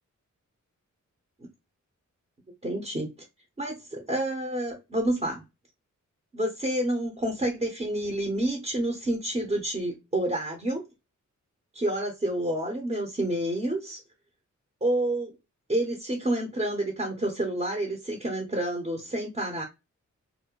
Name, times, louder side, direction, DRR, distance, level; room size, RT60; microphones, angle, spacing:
voice 1, 2.6-3.1 3.6-5.4 6.3-10.8 11.7-14.0 14.8-15.3 15.7-19.7, right 1 dB, 20° right, 0.6 m, -29 dB
2.4 x 2.1 x 2.9 m
wide cardioid pair, 90°, 30 cm